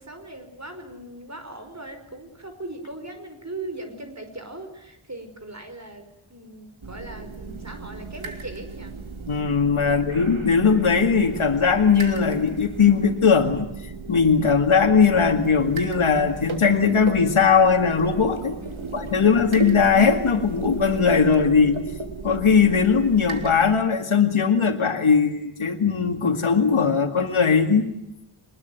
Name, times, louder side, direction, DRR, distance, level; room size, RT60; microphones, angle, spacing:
voice 1, 0.0-8.9 9.9-10.0 18.6-19.9, right 2 dB, 35° right, 7 dB, 5.3 m, -39 dB
sound 1, 6.8-23.8, right 3 dB, 75° right, 3.3 m, -35 dB
voice 2, 9.3-13.7 14.1-18.5 18.9-21.8 22.2-27.8, left 5 dB, 85° left, 3 dB, 2.2 m, -19 dB
24.5 x 21.0 x 9.4 m, 0.82 s
wide cardioid pair, 65°, 48 cm